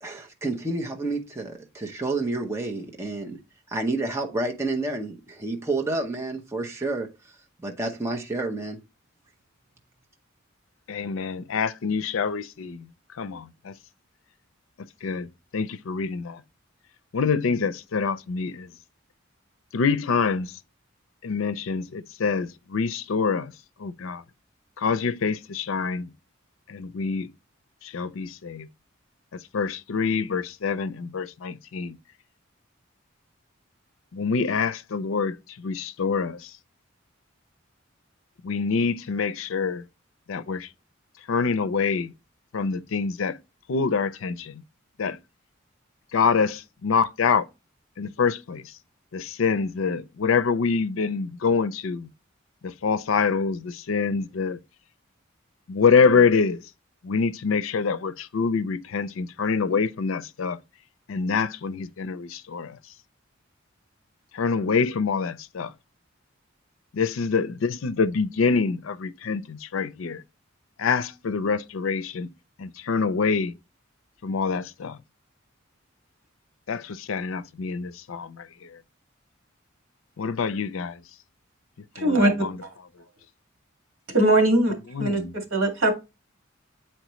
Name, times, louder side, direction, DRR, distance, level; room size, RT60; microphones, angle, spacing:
voice 1, 0.0-3.4 3.7-7.1 7.6-8.8, right 2 dB, 15° right, 0.8 m, -29 dB
voice 2, 10.9-13.7 14.8-16.4 17.1-18.7 19.7-20.6 21.2-23.5 23.8-24.2 24.8-26.1 26.7-27.3 27.8-28.7 29.3-32.0 34.1-36.5 38.4-39.8 40.3-40.7 41.3-42.1 42.5-43.4 43.7-44.6 45.0-45.2 46.1-47.5 48.0-48.7 49.1-52.1 52.6-54.6 55.7-56.7 57.0-60.6 61.1-62.8 64.3-65.7 66.9-70.2 70.8-72.3 72.6-73.5 74.2-75.0 76.7-78.8 80.2-81.0 82.0-82.6 84.9-85.3, left 5 dB, 80° left, 0.5 m, -26 dB
voice 3, 82.0-82.3 84.1-84.7 85.0-85.2 85.5-85.9, right 1 dB, 75° right, 2.0 m, -20 dB
7.9 x 4.4 x 3.1 m
head